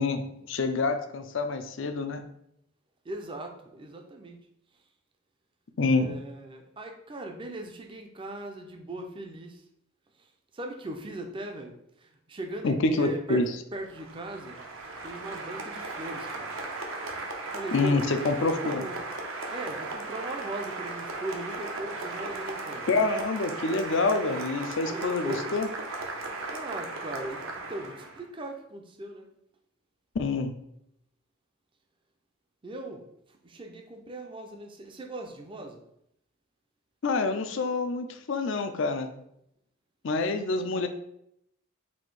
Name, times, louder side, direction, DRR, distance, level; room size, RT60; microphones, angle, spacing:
voice 1, 0.0-2.2 5.8-6.1 12.6-13.4 17.7-18.9 22.9-25.7 30.1-30.5 37.0-39.2 40.0-40.9, left 3 dB, 60° left, 8 dB, 0.5 m, -27 dB
voice 2, 3.0-4.5 4.7-4.8 5.9-9.6 10.1-14.6 15.0-16.6 17.5-18.0 18.6-19.0 19.5-22.9 24.9-25.5 26.5-29.3 32.6-35.8, right 1 dB, 25° right, 3 dB, 0.5 m, -39 dB
Applause, 13.8-28.2, right 3 dB, 70° right, 0.7 m, -37 dB
4.2 x 2.7 x 4.5 m, 0.76 s
head